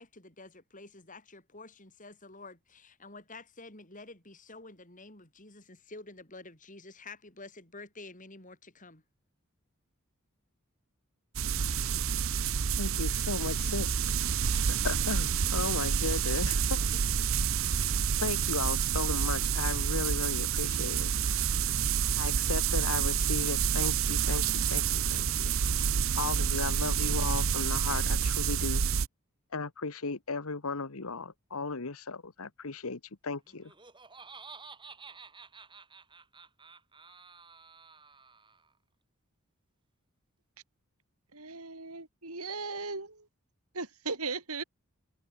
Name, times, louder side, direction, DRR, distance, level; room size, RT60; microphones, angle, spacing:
voice 1, 0.0-9.0, left 3 dB, 35° left, 7.8 m, -49 dB
sound 1, 11.3-29.1, right 7 dB, 65° right, 0.7 m, -28 dB
voice 2, 12.8-13.9 14.8-16.9 18.2-21.1 22.2-25.6 26.2-28.8 29.5-33.7, left 4 dB, 75° left, 1.3 m, -35 dB
Laughter, 33.5-38.7, right 5 dB, 20° right, 4.6 m, -51 dB
voice 3, 41.3-43.3 43.7-44.6, right 4 dB, 80° right, 6.8 m, -37 dB
head